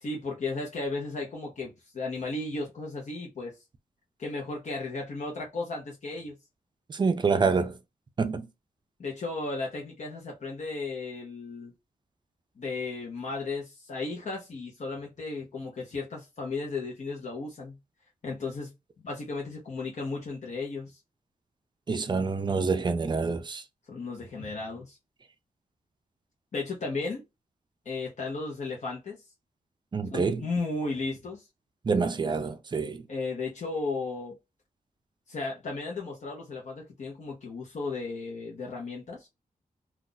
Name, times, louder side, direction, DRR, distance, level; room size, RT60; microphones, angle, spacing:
voice 1, 0.0-3.6 4.2-6.4 9.0-11.7 12.6-17.8 18.2-18.7 19.0-20.9 23.9-25.0 26.5-27.2 27.8-29.2 30.1-31.4 33.1-34.4 35.3-39.3, left 3 dB, 55° left, 0.8 m, -35 dB
voice 2, 6.9-7.8 8.2-8.5 21.9-23.6 29.9-30.5 31.8-33.1, right 4 dB, 30° right, 0.4 m, -27 dB
2.5 x 2.3 x 3.8 m
wide cardioid pair, 150°, 15 cm